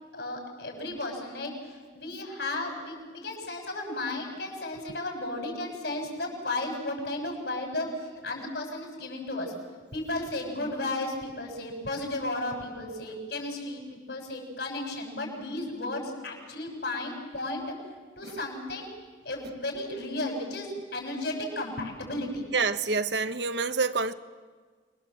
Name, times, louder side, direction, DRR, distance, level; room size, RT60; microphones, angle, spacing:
voice 1, 0.1-9.5 9.9-17.6 18.2-18.9 19.2-22.4, left 2 dB, 70° left, 7.0 m, -34 dB
voice 2, 22.5-24.1, right 4 dB, 75° right, 1.1 m, -27 dB
28.5 x 22.0 x 7.6 m
head